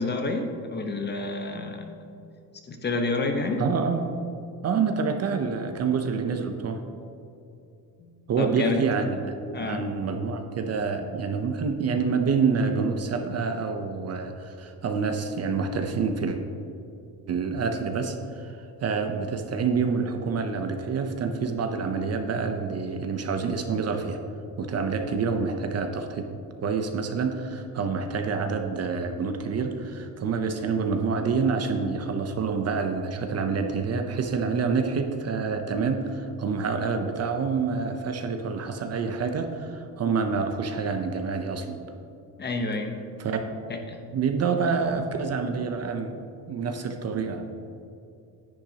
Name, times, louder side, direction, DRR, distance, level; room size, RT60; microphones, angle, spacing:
voice 1, 0.0-2.1 2.7-3.6 8.0-8.8 9.5-9.9 42.4-43.0 43.7-44.0, left 3 dB, 25° left, 4 dB, 1.0 m, -29 dB
voice 2, 3.6-4.1 4.6-6.8 8.3-16.4 17.3-24.2 24.6-26.3 26.6-41.8 43.2-43.4 44.1-46.2 46.5-47.5, right 5 dB, 35° right, 5 dB, 0.7 m, -27 dB
10.5 x 8.8 x 2.9 m, 2.7 s
cardioid pair, 120°, 42 cm